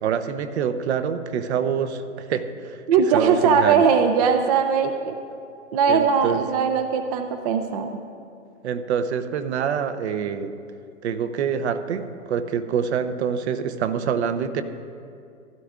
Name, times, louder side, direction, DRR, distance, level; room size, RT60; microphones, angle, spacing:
voice 1, 0.0-2.8 3.1-3.9 5.9-6.4 8.6-10.5 11.0-14.6, right 7 dB, 55° right, 10 dB, 0.8 m, -26 dB
voice 2, 2.9-5.1 5.7-7.9, right 6 dB, 30° right, 7 dB, 0.4 m, -20 dB
15.5 x 12.0 x 2.4 m, 2.4 s
hypercardioid pair, 125°, 40 cm